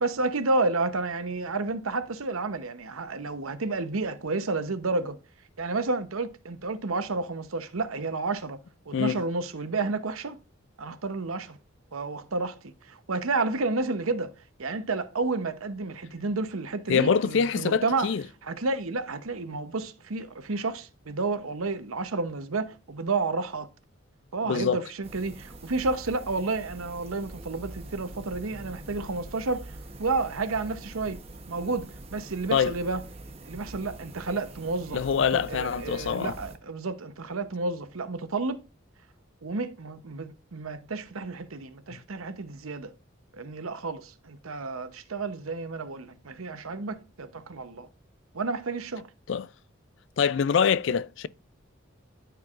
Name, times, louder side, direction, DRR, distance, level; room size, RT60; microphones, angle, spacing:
voice 1, 0.0-5.2 5.6-8.6 8.9-10.4 10.8-11.6 11.9-14.3 14.6-18.1 18.4-23.7 24.3-31.2 31.5-33.0 33.5-38.6 39.4-42.9 43.3-47.9 48.3-49.1, right 3 dB, 85° right, 0.9 m, -31 dB
voice 2, 8.9-9.2 16.9-18.2 24.4-24.8 32.5-32.7 34.9-36.4 49.3-49.5 50.2-51.3, left 6 dB, 60° left, 0.4 m, -25 dB
sound 1, 25.0-36.6, right 2 dB, 30° right, 1.0 m, -44 dB
13.0 x 4.7 x 2.5 m
head